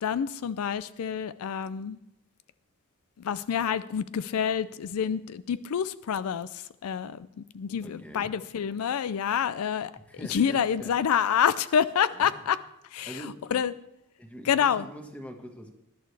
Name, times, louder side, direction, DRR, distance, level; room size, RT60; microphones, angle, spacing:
voice 1, 0.0-2.0 3.2-9.9 10.3-12.6 12.9-13.7 14.4-14.8, left 8 dB, 75° left, 16 dB, 0.4 m, -28 dB
voice 2, 7.8-8.3 10.1-10.9 12.1-12.4 13.1-13.6 14.2-15.7, equal, 5° left, 3 dB, 1.5 m, -43 dB
19.5 x 11.0 x 3.3 m, 0.84 s
head